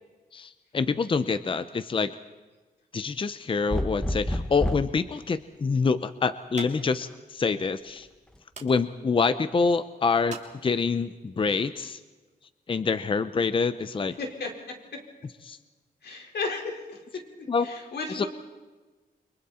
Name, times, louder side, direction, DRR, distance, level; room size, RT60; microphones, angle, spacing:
voice 1, 0.3-2.1 2.9-8.1 8.6-12.0 12.7-14.1 15.4-15.6 17.5-17.7 18.1-18.2, left 4 dB, 30° left, 12 dB, 0.7 m, -26 dB
sound 1, 3.7-5.0 6.6-7.2, left 1 dB, 5° left, 0.8 m, -29 dB
sound 2, 4.9-11.2, right 5 dB, 45° right, 3.0 m, -49 dB
voice 2, 14.2-14.5 14.9-15.0 16.0-17.0 17.6-18.3, left 4 dB, 90° left, 1 dB, 4.7 m, -33 dB
30.0 x 24.5 x 4.3 m, 1.3 s
wide cardioid pair, 160°, 17 cm